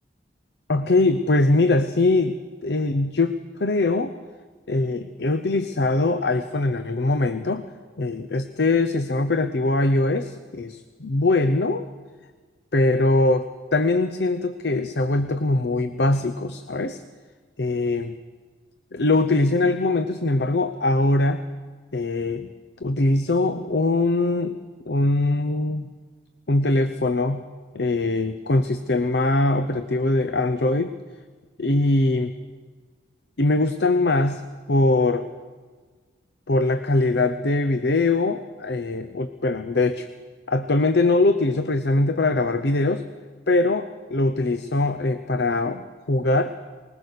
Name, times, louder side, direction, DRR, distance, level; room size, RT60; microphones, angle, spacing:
voice 1, 0.7-4.1 4.7-7.6 8.0-11.8 12.7-17.0 17.6-18.1 18.9-21.4 21.9-22.5 22.8-24.6 24.9-25.9 26.5-27.4 27.7-30.9 31.6-32.3 33.4-34.4 34.7-35.3 36.5-40.1 40.5-43.0 43.5-46.5, left 2 dB, 65° left, 10 dB, 0.7 m, -22 dB
20.5 x 20.0 x 6.7 m, 1.5 s
head